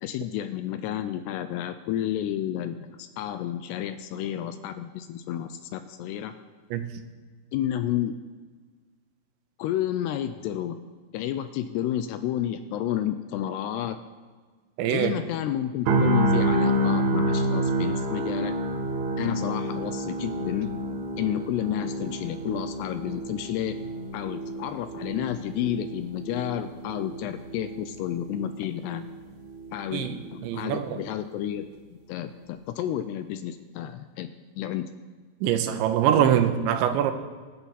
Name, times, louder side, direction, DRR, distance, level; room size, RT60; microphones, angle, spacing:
voice 1, 0.0-6.3 7.5-8.1 9.6-10.8 11.1-14.0 14.9-18.5 19.2-20.7 21.2-23.7 24.1-29.1 29.7-31.7 32.1-34.3 34.6-34.8, left 11 dB, 85° left, 10 dB, 2.5 m, -31 dB
voice 2, 14.8-15.2 29.9-30.9 35.4-37.1, right 10 dB, 90° right, 8 dB, 3.3 m, -24 dB
sound 1, 15.9-29.9 30.2-30.4, right 1 dB, 70° right, 3.1 m, -29 dB
24.0 x 10.0 x 4.1 m, 1.5 s
omnidirectional pair, 5.2 m